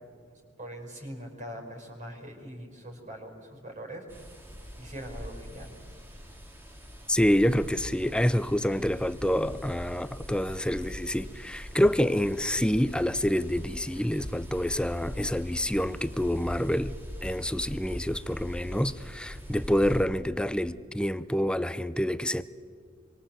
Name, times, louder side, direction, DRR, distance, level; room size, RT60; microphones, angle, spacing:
voice 1, 0.6-4.3 4.8-5.7, equal, 40° right, 5.3 m, -42 dB
sound 1, 4.1-20.1, equal, 10° right, 2.5 m, -42 dB
voice 2, 7.1-16.9 17.2-22.4, equal, 5° left, 0.6 m, -27 dB
27.0 x 24.0 x 7.6 m
head